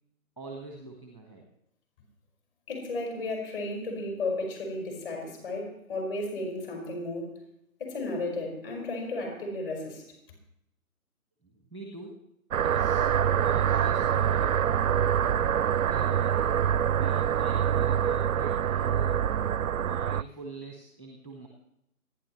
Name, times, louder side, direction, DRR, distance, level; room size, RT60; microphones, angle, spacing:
voice 1, 0.4-1.4 11.4-12.2 12.6-13.1 13.4-14.6 15.9-19.2 19.7-21.5, right 3 dB, 5° left, 0 dB, 1.1 m, -43 dB
voice 2, 2.7-7.4 7.8-10.0, left 2 dB, 40° left, 1 dB, 5.1 m, -34 dB
sound 1, 12.5-20.2, right 9 dB, 65° right, 0.5 m, -25 dB
26.5 x 10.0 x 3.1 m, 0.79 s
figure-of-eight pair, 140°, 44 cm